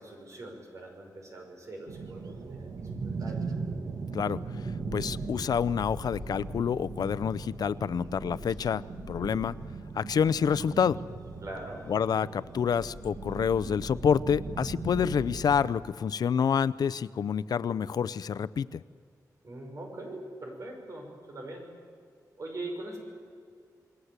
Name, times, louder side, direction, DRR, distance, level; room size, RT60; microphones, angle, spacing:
voice 1, 0.0-3.4 11.4-11.9 19.4-21.7 22.4-23.0, right 2 dB, 50° right, 2 dB, 6.1 m, -42 dB
sound 1, 1.9-15.8, right 4 dB, 65° right, 1.6 m, -39 dB
voice 2, 4.1-9.6 9.9-11.0 11.9-18.8, left 7 dB, 75° left, 17 dB, 0.6 m, -28 dB
sound 2, 4.6-15.7, left 1 dB, ahead, 3.5 m, -45 dB
28.0 x 21.0 x 8.2 m, 2.2 s
wide cardioid pair, 155°, 7 cm